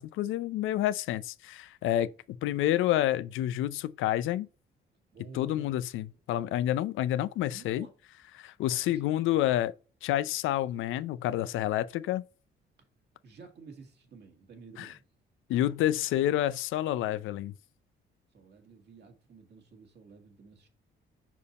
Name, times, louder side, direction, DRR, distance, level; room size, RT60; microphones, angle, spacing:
voice 1, 0.0-4.5 5.3-7.9 8.4-9.7 10.0-12.2 14.8-14.9 15.5-17.5, left 13 dB, 85° left, 0.5 m, -29 dB
voice 2, 5.1-5.7 7.4-7.9 8.7-9.1 13.2-15.1 18.3-20.7, right 4 dB, 55° right, 1.7 m, -51 dB
5.3 x 4.5 x 4.1 m
cardioid pair, 90°, 20 cm